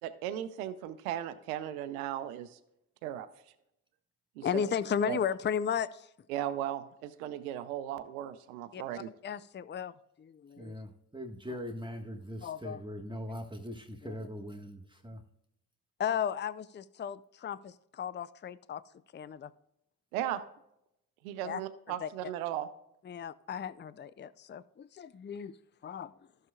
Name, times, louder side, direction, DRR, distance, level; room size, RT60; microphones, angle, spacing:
voice 1, 0.0-2.6 3.0-3.3 4.4-4.6 5.1-5.2 6.3-9.1 20.1-20.4 21.2-22.7, right 11 dB, 90° right, 0.6 m, -36 dB
voice 2, 4.4-6.1 8.7-8.8 9.2-9.9 10.2-10.8 12.4-12.8 14.0-14.2 16.0-18.8 19.1-19.5 21.4-21.6 22.0-22.1 23.1-25.5 25.8-26.1, left 8 dB, 25° left, 0.5 m, -35 dB
voice 3, 10.6-15.2, equal, 10° right, 1.5 m, -41 dB
14.5 x 6.6 x 2.4 m
hypercardioid pair, 40°, 42 cm